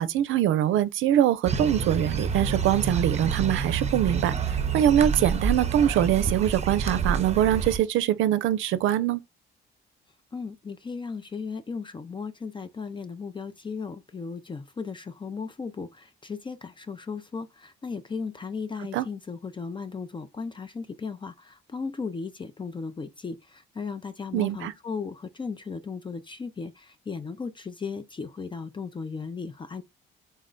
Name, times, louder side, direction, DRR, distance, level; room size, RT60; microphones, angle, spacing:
voice 1, 0.0-4.3 4.7-9.2 18.9-19.1 24.3-24.7, right 11 dB, 80° right, 0.5 m, -23 dB
sound 1, 1.5-7.8, right 6 dB, 35° right, 0.6 m, -28 dB
voice 2, 10.3-29.8, left 5 dB, 25° left, 0.4 m, -36 dB
4.1 x 2.1 x 3.7 m
cardioid pair, 90°, 20 cm